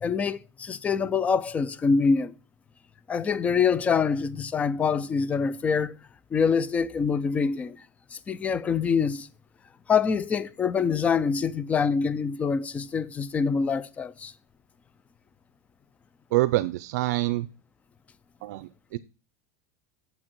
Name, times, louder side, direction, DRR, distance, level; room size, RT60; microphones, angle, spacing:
voice 1, 0.0-2.3 3.1-6.0 6.3-7.8 8.1-9.3 9.9-14.3, left 5 dB, 15° left, 0.4 m, -25 dB
voice 2, 16.3-17.5 18.4-19.0, right 17 dB, 70° right, 0.5 m, -26 dB
7.4 x 6.2 x 6.1 m
supercardioid pair, 150°, 9 cm